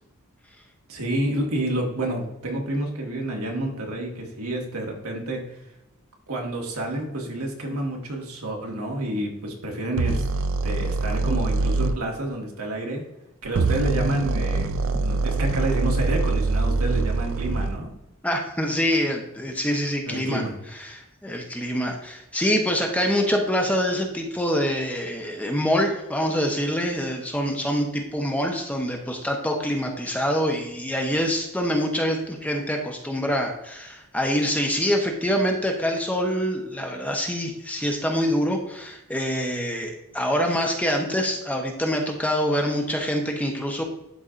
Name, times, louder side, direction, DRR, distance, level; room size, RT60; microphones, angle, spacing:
voice 1, 0.9-5.6 6.3-10.2 10.6-13.0 13.4-14.7 14.9-17.9 20.0-20.5, right 1 dB, 75° right, 0 dB, 1.8 m, -29 dB
sound 1, 10.0-12.0 13.4-17.8, right 3 dB, 60° right, 0.4 m, -24 dB
voice 2, 18.2-20.4 20.7-43.8, equal, 5° left, 1 dB, 0.8 m, -25 dB
12.0 x 4.3 x 2.5 m, 0.88 s
head